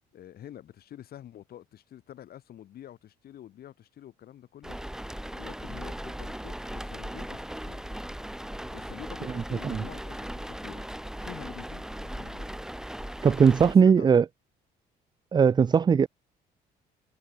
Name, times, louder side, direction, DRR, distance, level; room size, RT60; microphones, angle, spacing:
voice 1, 0.1-7.9 8.7-12.7 13.8-14.2, left 11 dB, 60° left, 2.8 m, -47 dB
sound 1, 4.6-13.8, equal, 5° right, 2.8 m, -38 dB
voice 2, 13.2-14.2 15.3-16.1, right 6 dB, 25° right, 0.4 m, -19 dB
cardioid pair, 105°, 17 cm